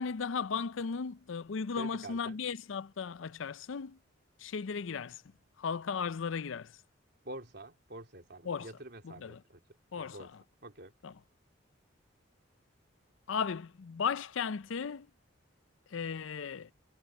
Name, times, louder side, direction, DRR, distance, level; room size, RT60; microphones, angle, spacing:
voice 1, 0.0-4.0 4.4-5.2 5.6-6.7 8.5-8.7 9.0-9.4 9.9-10.3 11.0-11.1 13.3-15.1 15.9-16.7, left 6 dB, 75° left, 0.5 m, -36 dB
voice 2, 1.7-2.4 7.2-9.6 9.9-10.3 10.6-10.9, right 1 dB, 55° right, 3.2 m, -47 dB
head